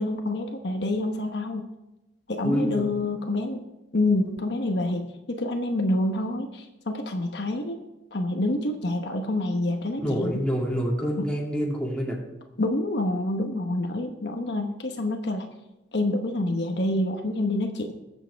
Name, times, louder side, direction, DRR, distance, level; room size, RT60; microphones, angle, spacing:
voice 1, 0.0-1.6 2.3-3.6 3.9-7.8 8.1-10.4 11.2-11.3 12.6-15.5 15.9-17.9, left 1 dB, 65° left, 3 dB, 1.0 m, -27 dB
voice 2, 2.4-2.9 10.0-12.2, equal, 5° left, -3 dB, 2.5 m, -27 dB
19.5 x 7.5 x 3.5 m, 0.98 s
head